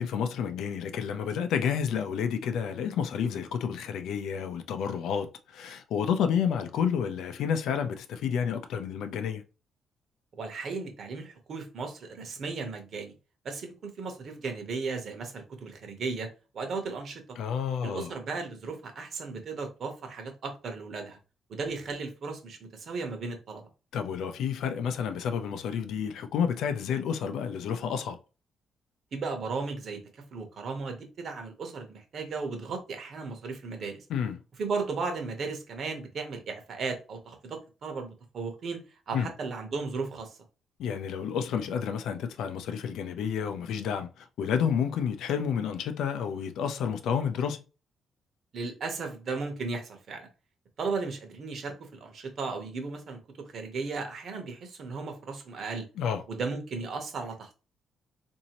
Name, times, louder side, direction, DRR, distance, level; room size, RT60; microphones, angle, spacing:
voice 1, 0.0-9.4 17.4-18.1 23.9-28.2 34.1-34.4 39.1-39.3 40.8-47.6 56.0-56.2, left 7 dB, 85° left, 0.5 m, -30 dB
voice 2, 10.3-13.1 13.4-16.3 16.5-17.2 17.8-21.2 21.5-23.6 29.1-30.0 30.3-34.0 34.6-38.8 39.1-40.4 48.5-50.3 50.8-53.2 53.5-55.9 56.3-57.5, right 4 dB, 45° right, 0.9 m, -35 dB
4.0 x 2.7 x 2.9 m
cardioid pair, 175°, 0 cm